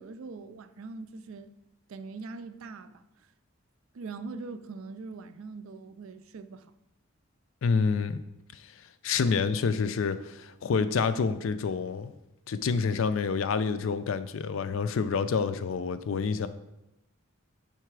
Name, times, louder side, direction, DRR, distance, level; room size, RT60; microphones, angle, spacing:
voice 1, 0.0-1.5 1.9-3.3 3.9-6.7, right 4 dB, 70° right, 0.4 m, -42 dB
voice 2, 7.6-8.2 9.0-12.1 12.5-16.5, left 5 dB, 65° left, 0.4 m, -28 dB
5.8 x 4.6 x 4.7 m
head